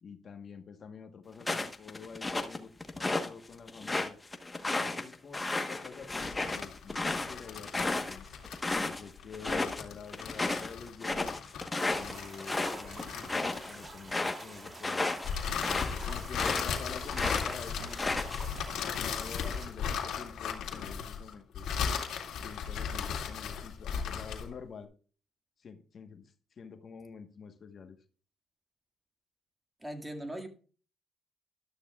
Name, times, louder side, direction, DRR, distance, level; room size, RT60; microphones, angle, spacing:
voice 1, 0.0-4.2 4.7-5.4 5.7-8.3 8.8-11.4 11.9-15.1 16.0-21.7 22.4-24.9 25.6-28.0, left 6 dB, 50° left, 7 dB, 1.2 m, -48 dB
sound 1, 1.4-3.3 3.7-9.0 9.3-9.8 10.1-16.8 17.1-18.6, left 2 dB, 20° left, 1.1 m, -33 dB
sound 2, 6.1-13.9 15.2-24.5, left 7 dB, 80° left, 2.1 m, -36 dB
sound 3, 11.8-19.7, right 2 dB, 35° right, 3.7 m, -48 dB
voice 2, 29.8-30.5, right 1 dB, 10° right, 5 dB, 1.9 m, -39 dB
13.0 x 12.0 x 2.4 m, 0.39 s
cardioid pair, 90°, 0 cm